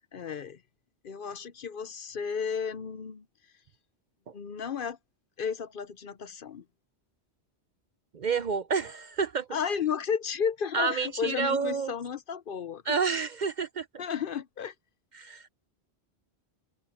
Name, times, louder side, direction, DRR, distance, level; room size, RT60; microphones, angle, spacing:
voice 1, 0.1-0.6 1.0-3.2 4.3-5.0 5.4-6.6 9.5-13.0 14.0-14.7, left 7 dB, 55° left, 0.8 m, -33 dB
voice 2, 8.1-9.5 10.7-11.9 12.9-13.8 15.1-15.5, right 5 dB, 50° right, 0.6 m, -29 dB
omnidirectional pair, 1.1 m